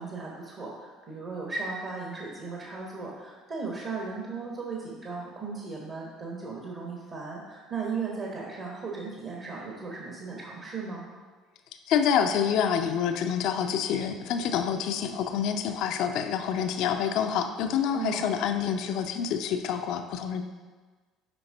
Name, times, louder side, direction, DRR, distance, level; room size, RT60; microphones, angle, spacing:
voice 1, 0.0-11.1 17.9-18.3, right 4 dB, 45° right, -2 dB, 1.3 m, -36 dB
voice 2, 11.9-20.4, left 8 dB, 60° left, 7 dB, 0.5 m, -27 dB
6.8 x 5.1 x 3.8 m, 1.4 s
figure-of-eight pair, 55°, 0 cm